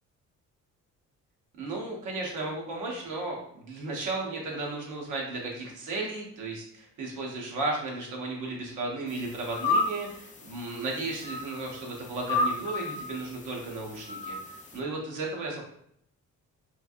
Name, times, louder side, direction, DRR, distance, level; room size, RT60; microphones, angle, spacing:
voice 1, 1.6-14.4 14.7-15.6, right 2 dB, 85° right, -1 dB, 1.0 m, -34 dB
sound 1, 9.1-14.8, left 2 dB, 25° left, 0.4 m, -33 dB
3.2 x 2.5 x 2.4 m, 0.71 s
cardioid pair, 90°, 30 cm